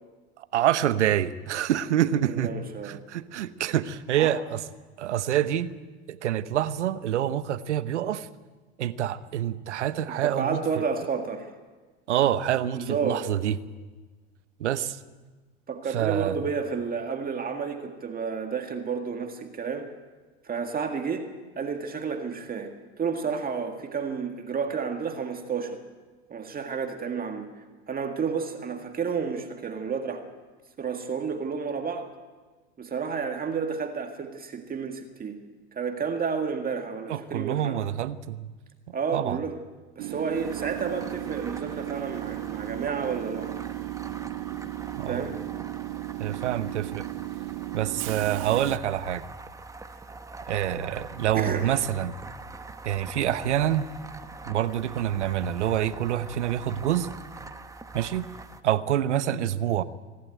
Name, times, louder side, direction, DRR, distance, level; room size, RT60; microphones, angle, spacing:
voice 1, 0.5-2.5 2.8-4.6 5.0-5.7 6.1-8.3 8.8-10.8 12.1-13.5 14.6-15.0 15.9-16.4 37.1-38.5 39.1-39.4 45.0-45.3 46.2-47.0 47.7-49.2 50.5-52.1 52.8-53.9 54.5-57.1 57.9-58.3 58.6-59.8, right 11 dB, 85° right, 14 dB, 1.0 m, -26 dB
voice 2, 2.3-3.0 4.2-4.3 10.1-11.5 12.7-13.3 15.7-19.9 20.4-21.3 21.6-25.8 26.3-27.5 27.9-30.2 30.8-32.1 32.8-35.3 35.8-37.8 38.9-39.5 40.0-43.7 45.1-45.4 51.3-51.7, right 5 dB, 25° right, 4 dB, 1.9 m, -31 dB
Train / Subway metro underground, 40.0-48.8, right 20 dB, 60° right, 0.7 m, -35 dB
sound 1, 40.3-58.6, right 3 dB, 10° right, 1.2 m, -43 dB
25.5 x 12.0 x 9.2 m, 1.3 s
hypercardioid pair, 100°, 34 cm